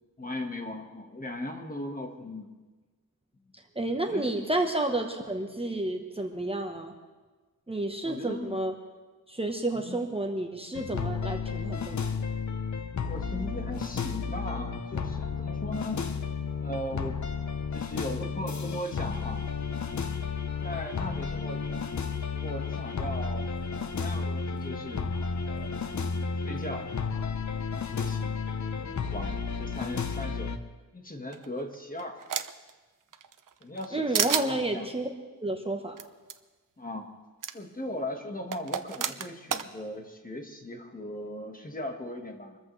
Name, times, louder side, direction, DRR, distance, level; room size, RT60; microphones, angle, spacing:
voice 1, 0.2-2.5 4.1-4.5 8.0-8.6 9.7-10.0 13.1-16.0 16.6-17.2 17.7-19.4 20.6-21.9 22.3-23.5 23.8-25.1 25.4-26.0 26.4-26.9 27.9-28.3 28.7-30.5 30.9-32.2 33.6-34.9 36.8-37.1 37.5-42.6, left 1 dB, 25° left, 3 dB, 1.6 m, -38 dB
voice 2, 3.7-6.9 7.7-8.7 9.3-12.1 33.9-35.1 35.4-36.0, right 2 dB, 15° right, 3 dB, 1.1 m, -30 dB
sound 1, 10.7-30.6, left 5 dB, 55° left, 0.9 m, -32 dB
sound 2, 31.3-32.7 33.1-33.9 34.1-34.5 36.0-36.1 36.3-36.4 37.4-37.5 38.5-39.7, right 8 dB, 65° right, 0.7 m, -30 dB
25.5 x 14.0 x 3.3 m, 1.3 s
wide cardioid pair, 130°, 35 cm